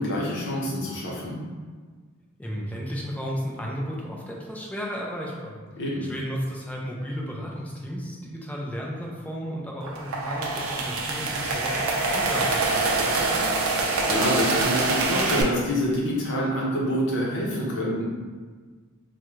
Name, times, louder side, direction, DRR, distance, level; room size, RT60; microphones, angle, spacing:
voice 1, 0.0-1.4 5.8-6.1 13.7-18.1, equal, 55° left, -4 dB, 0.7 m, -27 dB
voice 2, 2.4-5.6 6.0-13.4, equal, 5° left, -3 dB, 0.4 m, -34 dB
sound 1, 9.8-15.4, right 3 dB, 70° right, 0.4 m, -25 dB
3.6 x 2.1 x 3.1 m, 1.5 s
head